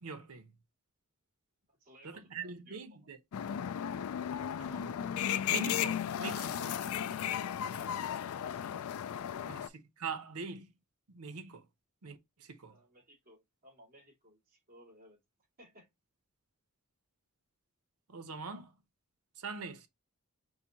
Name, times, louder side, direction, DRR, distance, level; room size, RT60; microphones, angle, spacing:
voice 1, 0.0-0.5 2.0-3.2 4.6-4.9 5.5-6.7 9.5-9.6 10.0-10.7 11.1-11.6 12.0-12.8 18.1-18.7 19.4-19.9, right 4 dB, 90° right, 0.8 m, -43 dB
voice 2, 1.7-3.1 7.7-9.5 12.7-15.2 15.6-15.9, equal, 45° right, 2.5 m, -60 dB
sound 1, 3.3-9.7, left 9 dB, 65° left, 0.3 m, -35 dB
5.5 x 2.6 x 2.8 m
head